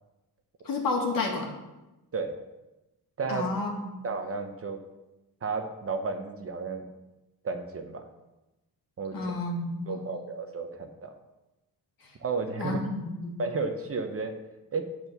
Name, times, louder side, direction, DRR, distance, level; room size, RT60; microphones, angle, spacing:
voice 1, 0.6-1.5 3.3-3.9 9.1-10.0 12.0-12.1 12.6-13.3, left 3 dB, 60° left, 0 dB, 2.2 m, -31 dB
voice 2, 3.2-3.5 4.0-4.8 5.4-6.8 7.4-8.0 9.0-9.3 9.9-11.1 12.2-12.8 13.4-14.4 14.7-14.8, right 4 dB, 35° right, 6 dB, 0.9 m, -32 dB
8.4 x 4.6 x 6.8 m, 1.0 s
cardioid pair, 125°, 38 cm